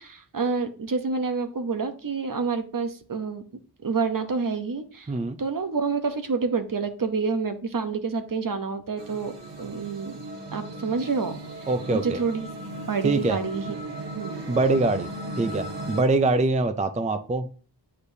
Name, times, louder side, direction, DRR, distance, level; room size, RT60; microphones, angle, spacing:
voice 1, 0.0-3.4 3.8-5.1 5.4-9.3 9.6-10.2 10.5-11.4 11.9-12.5 12.9-13.6 14.1-14.5, right 4 dB, 55° right, 8 dB, 0.8 m, -28 dB
sound 1, 9.0-16.0, right 2 dB, 85° right, 1.1 m, -37 dB
voice 2, 11.7-12.2 13.0-13.4 14.5-15.1 15.4-17.5, right 2 dB, 20° right, 9 dB, 0.4 m, -23 dB
8.2 x 5.1 x 2.7 m, 0.41 s
wide cardioid pair, 65°, 41 cm